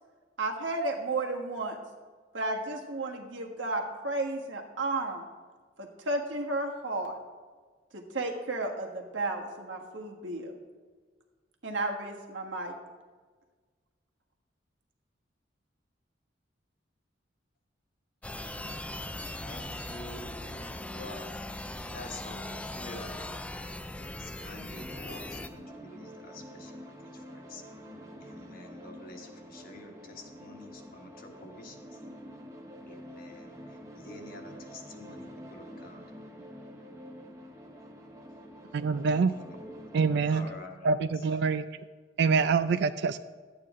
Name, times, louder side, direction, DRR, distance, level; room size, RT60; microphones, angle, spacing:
voice 1, 0.4-1.8 2.3-5.2 5.8-7.1 7.9-10.5 11.6-12.8, right 2 dB, 90° right, 2 dB, 1.5 m, -33 dB
sound 1, 18.2-25.5, left 1 dB, 5° left, 0.3 m, -39 dB
voice 2, 19.4-21.3 21.9-22.5 22.7-23.4 24.0-26.7 27.1-27.6 28.2-32.0 32.9-36.1 39.3-39.6 40.3-40.9, left 2 dB, 50° left, 2 dB, 1.4 m, -48 dB
sound 2, 24.7-40.5, equal, 15° right, 1.0 m, -47 dB
voice 3, 38.7-39.3 39.9-40.5 40.8-41.6 42.2-43.2, right 5 dB, 65° right, 12 dB, 0.4 m, -25 dB
12.0 x 8.7 x 3.7 m, 1.4 s
head